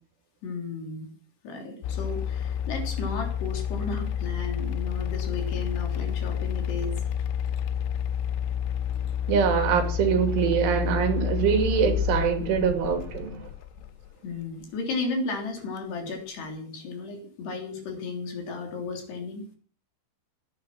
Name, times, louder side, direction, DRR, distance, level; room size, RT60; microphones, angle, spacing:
voice 1, 0.4-1.1 1.4-7.0 14.2-19.5, left 3 dB, 60° left, 5.2 m, -34 dB
sound 1, 1.8-14.1, left 9 dB, 90° left, 3.5 m, -29 dB
voice 2, 9.3-13.5, right 7 dB, 70° right, 4.9 m, -24 dB
18.0 x 11.0 x 6.1 m
omnidirectional pair, 5.8 m